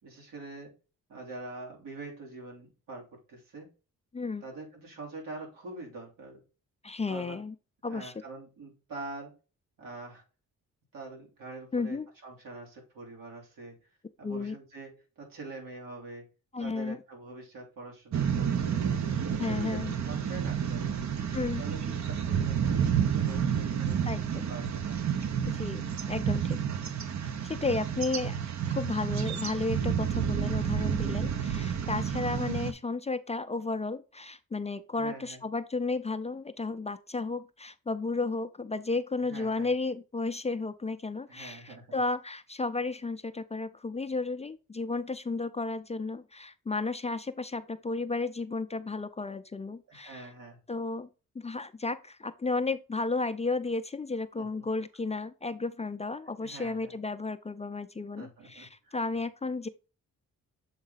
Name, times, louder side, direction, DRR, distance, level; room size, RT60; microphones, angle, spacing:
voice 1, 0.0-0.7 1.1-3.7 4.4-6.4 7.1-7.4 7.8-9.3 9.8-10.2 10.9-13.8 14.2-16.2 16.6-19.0 19.4-20.9 21.6-24.1 24.5-25.0 34.9-35.4 39.2-39.7 41.3-42.0 49.9-50.6 54.4-54.6 56.4-56.9 58.2-59.0, right 3 dB, 85° right, 3.1 m, -44 dB
voice 2, 4.1-4.4 6.8-7.5 7.8-8.1 11.7-12.1 14.2-14.5 16.5-17.0 19.4-19.9 21.3-21.6 24.1-24.4 25.5-26.6 27.2-28.3 28.7-50.3 50.7-51.1 51.3-59.7, left 3 dB, 20° left, 0.4 m, -33 dB
sound 1, 18.1-32.7, right 8 dB, 55° right, 0.8 m, -30 dB
7.2 x 3.8 x 3.9 m
cardioid pair, 95°, 33 cm